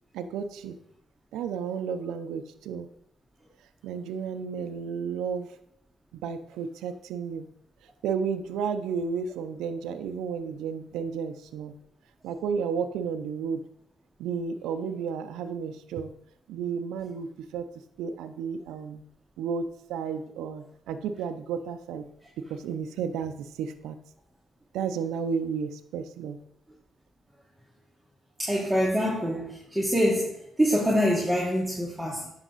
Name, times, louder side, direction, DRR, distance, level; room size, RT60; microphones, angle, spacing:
voice 1, 0.1-0.8 1.3-2.9 3.8-5.6 6.1-7.5 8.0-11.7 12.2-13.6 14.2-16.1 16.5-17.7 18.0-19.0 19.4-22.1 22.4-24.0 24.7-26.4, right 6 dB, 90° right, 9 dB, 0.7 m, -32 dB
voice 2, 28.4-32.3, equal, ahead, -4 dB, 1.7 m, -25 dB
10.0 x 5.8 x 4.1 m, 0.73 s
cardioid pair, 90°, 0 cm